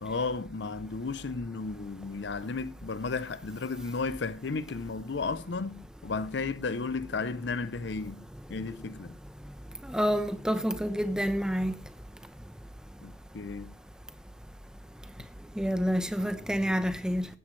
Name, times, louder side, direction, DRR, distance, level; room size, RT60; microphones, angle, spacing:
voice 1, 0.0-9.2 13.0-13.8, left 4 dB, 65° left, 0.6 m, -34 dB
voice 2, 9.8-11.7 15.6-17.3, equal, 5° right, 0.8 m, -28 dB
15.0 x 10.5 x 3.2 m
head